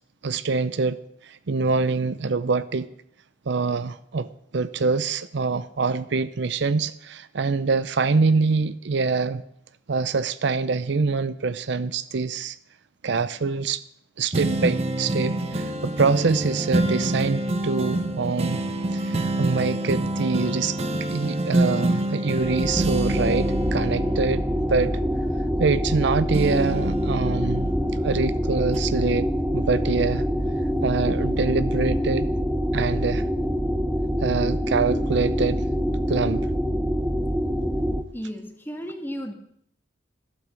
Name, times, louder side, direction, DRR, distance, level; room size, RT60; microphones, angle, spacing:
voice 1, 0.2-2.9 3.5-9.4 9.9-12.6 13.0-13.8 14.2-18.6 18.9-20.8 21.1-24.4 24.7-25.0 25.6-27.7 28.0-30.3 30.8-32.3 32.7-33.3 34.2-35.7 36.1-36.5, right 4 dB, 65° right, 15 dB, 0.6 m, -25 dB
sound 1, 14.3-26.0 26.3-28.2 28.7-28.8, right 1 dB, 35° right, 1.0 m, -27 dB
sound 2, 22.3-38.0, equal, 5° right, 0.6 m, -25 dB
voice 2, 38.1-39.3, equal, 10° left, 4 dB, 1.7 m, -34 dB
12.5 x 8.6 x 7.6 m, 0.71 s
head